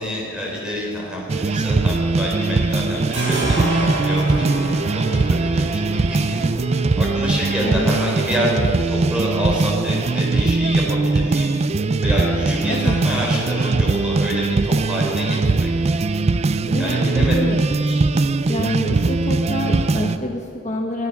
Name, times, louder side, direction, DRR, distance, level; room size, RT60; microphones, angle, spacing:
voice 1, 0.0-11.5 12.0-15.7 16.7-17.5 17.8-18.0, equal, 5° right, -4 dB, 4.2 m, -27 dB
sound 1, 1.3-20.2, right 3 dB, 35° right, 0.4 m, -20 dB
sound 2, 1.5-2.5 2.7-20.2, right 1 dB, 65° right, 4.4 m, -35 dB
voice 2, 7.6-8.0 12.7-13.0 16.6-17.6 18.5-21.1, left 1 dB, 35° left, 1 dB, 1.1 m, -27 dB
23.0 x 9.8 x 5.8 m, 2.4 s
head